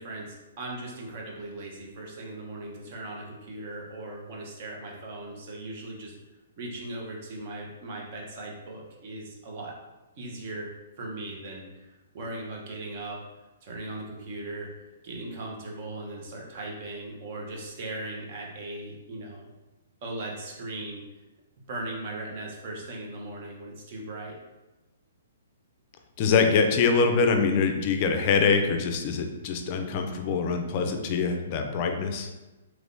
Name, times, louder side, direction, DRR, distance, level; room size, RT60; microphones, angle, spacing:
voice 1, 0.0-6.2 6.6-9.7 10.2-13.2 13.6-14.7 15.0-19.5 20.0-21.0 21.7-24.4, right 2 dB, 40° right, -1 dB, 0.8 m, -38 dB
voice 2, 26.2-32.3, left 5 dB, 35° left, 5 dB, 0.4 m, -24 dB
3.4 x 3.0 x 2.6 m, 1.1 s
hypercardioid pair, 155°, 0 cm